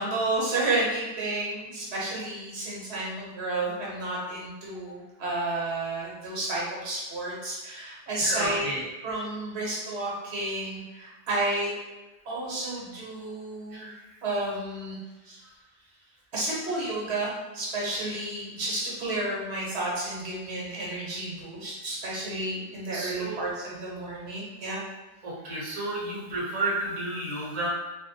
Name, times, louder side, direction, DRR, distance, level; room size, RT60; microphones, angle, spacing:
voice 1, 0.0-8.6 9.0-11.7 12.2-13.9 14.2-15.0 15.3-15.4 16.3-24.8, right 2 dB, 80° right, -5 dB, 1.1 m, -31 dB
voice 2, 8.2-8.8 13.7-14.0 22.9-23.4 25.2-27.7, right 2 dB, 40° right, -6 dB, 0.7 m, -31 dB
2.6 x 2.1 x 2.6 m, 1.1 s
omnidirectional pair, 1.1 m